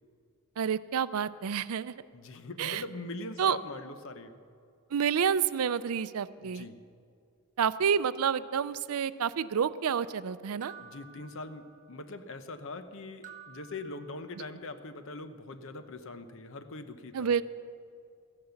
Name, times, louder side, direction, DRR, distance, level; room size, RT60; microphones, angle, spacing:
voice 1, 0.6-1.9 2.6-2.8 3.4-3.6 4.9-6.6 7.6-10.7 17.1-17.4, right 7 dB, 85° right, 16 dB, 0.5 m, -29 dB
voice 2, 2.1-4.4 6.4-6.8 10.8-17.3, left 2 dB, 65° left, 10 dB, 0.9 m, -42 dB
sound 1, 10.6-12.1 13.2-14.7, right 7 dB, 35° right, 0.9 m, -52 dB
14.5 x 10.5 x 7.0 m, 2.3 s
head